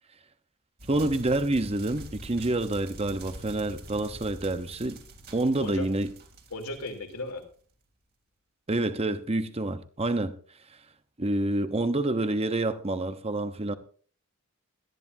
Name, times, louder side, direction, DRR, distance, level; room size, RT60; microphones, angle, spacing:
sound 1, 0.8-7.6, right 1 dB, 45° right, 3.0 m, -45 dB
voice 1, 0.9-5.0 5.3-6.1 8.7-10.3 11.2-13.7, right 2 dB, 25° right, 0.9 m, -27 dB
voice 2, 6.5-7.4, left 2 dB, 75° left, 3.3 m, -35 dB
18.5 x 13.5 x 2.7 m
head